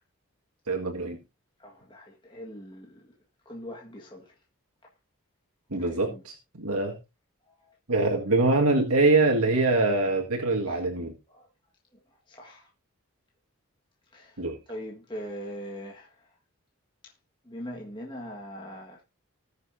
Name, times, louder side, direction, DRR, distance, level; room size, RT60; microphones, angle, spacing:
voice 1, 0.7-1.2 5.7-7.0 7.9-11.1 14.4-14.6, right 2 dB, 85° right, 1.8 m, -24 dB
voice 2, 1.6-3.0 3.4-4.3 5.8-6.2 7.6-7.7 8.2-8.3 10.7-10.8 11.3-11.5 12.3-12.7 14.1-16.1 17.0-17.1 17.4-19.0, equal, 20° left, 1.6 m, -41 dB
19.0 x 6.8 x 2.7 m
head